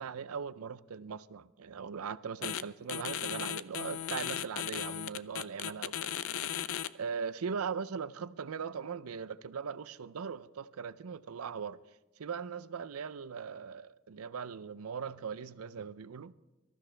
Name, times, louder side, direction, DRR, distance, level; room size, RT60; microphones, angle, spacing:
voice 1, 0.0-6.1 6.9-11.8 12.2-16.3, right 6 dB, 75° right, 0.5 m, -39 dB
sound 1, 2.4-2.6 2.9-6.9, left 10 dB, 65° left, 0.5 m, -36 dB
24.5 x 13.5 x 3.3 m
head